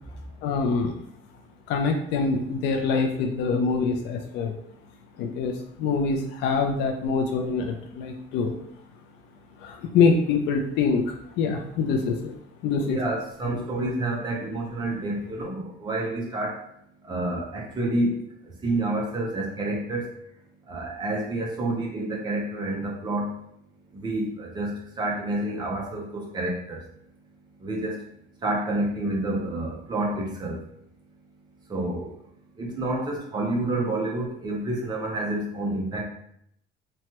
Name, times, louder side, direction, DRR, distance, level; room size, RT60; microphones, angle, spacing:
voice 1, 0.4-0.9 1.7-4.5 5.2-8.5 9.6-12.3 12.6-13.0 13.4-13.6, left 4 dB, 65° left, 3 dB, 0.4 m, -25 dB
voice 2, 12.8-16.6 17.0-18.2 18.6-20.1 20.7-23.3 23.9-26.8 27.6-28.0 28.4-30.6 31.7-32.1 32.6-36.0, right 2 dB, 20° right, -2 dB, 0.6 m, -29 dB
3.0 x 2.2 x 2.9 m, 0.70 s
cardioid pair, 160°, 20 cm